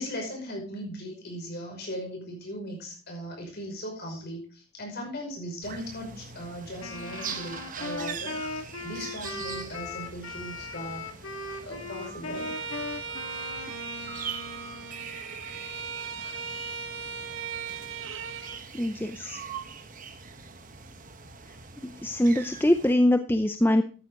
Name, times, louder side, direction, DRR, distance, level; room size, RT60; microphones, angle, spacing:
voice 1, 0.0-11.1 11.4-12.5, equal, 50° left, 1 dB, 5.6 m, -38 dB
sound 1, 5.6-22.9, right 6 dB, 40° right, 1.1 m, -42 dB
Wind instrument woodwind instrument, 6.8-15.2, left 3 dB, 75° left, 2.1 m, -38 dB
Bowed string instrument, 12.3-18.6, right 5 dB, 60° right, 1.0 m, -38 dB
voice 2, 18.7-19.4 21.8-23.8, left 1 dB, 10° left, 8 dB, 0.5 m, -23 dB
12.5 x 9.7 x 3.7 m, 0.37 s
head